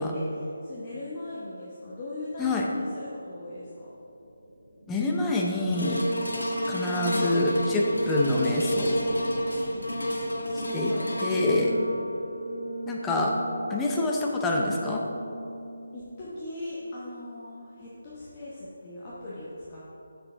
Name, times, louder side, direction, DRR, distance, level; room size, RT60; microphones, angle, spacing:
voice 1, 0.0-3.9 10.4-11.1 11.5-12.0 15.9-19.9, left 2 dB, 25° left, -8 dB, 1.0 m, -39 dB
sound 1, 3.7-13.4, equal, 45° right, 1.7 m, -43 dB
voice 2, 4.9-6.0 6.7-9.0 10.7-10.9 11.2-11.8 12.8-13.3 13.7-15.0, left 2 dB, 10° left, -2 dB, 0.6 m, -26 dB
sound 2, 5.7-16.1 16.7-16.8, equal, 90° left, 1.2 m, -32 dB
7.2 x 6.7 x 3.3 m, 2.8 s
figure-of-eight pair, 160°, 0 cm